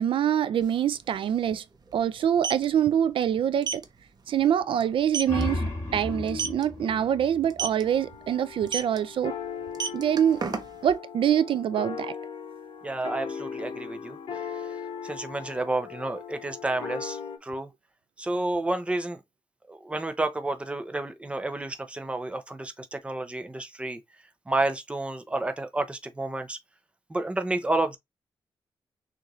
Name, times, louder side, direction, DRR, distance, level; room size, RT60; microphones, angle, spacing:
voice 1, 0.0-1.6 1.9-3.8 4.3-5.6 5.9-9.3 9.9-10.4 10.8-12.1, right 9 dB, 75° right, 0.3 m, -25 dB
sound 1, 0.6-0.7 0.9-1.1 2.2-2.6 3.6-3.8 4.3-4.5 4.8-4.9 5.1-5.4 6.3-6.6 7.5-7.8 8.7-9.0 9.6-10.9, right 6 dB, 50° right, 0.9 m, -29 dB
sound 2, 5.0-8.4, left 1 dB, 25° left, 2.1 m, -34 dB
sound 3, 7.8-17.4, left 6 dB, 65° left, 1.0 m, -38 dB
voice 2, 12.8-14.2 15.0-17.7 18.2-19.2 19.7-24.0 24.5-26.6 27.1-28.0, right 2 dB, 15° right, 0.6 m, -30 dB
6.4 x 2.6 x 3.0 m
wide cardioid pair, 130°, 9 cm